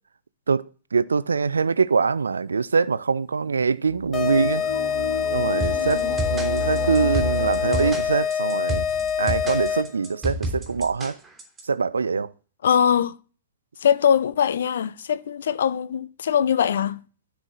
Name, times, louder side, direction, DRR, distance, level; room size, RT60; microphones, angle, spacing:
voice 1, 0.5-4.6 5.3-8.9 9.2-11.2 11.6-12.3, right 5 dB, 75° right, 0.4 m, -24 dB
sound 1, 3.9-7.9, left 1 dB, 40° left, 3.9 m, -31 dB
sound 2, 4.1-10.1, left 7 dB, 20° left, 1.4 m, -25 dB
sound 3, 5.6-11.6, right 1 dB, 10° right, 3.2 m, -30 dB
voice 2, 5.8-6.2 12.6-13.2 13.8-17.0, left 8 dB, 60° left, 0.5 m, -22 dB
13.0 x 4.7 x 3.9 m
figure-of-eight pair, 100°, 0 cm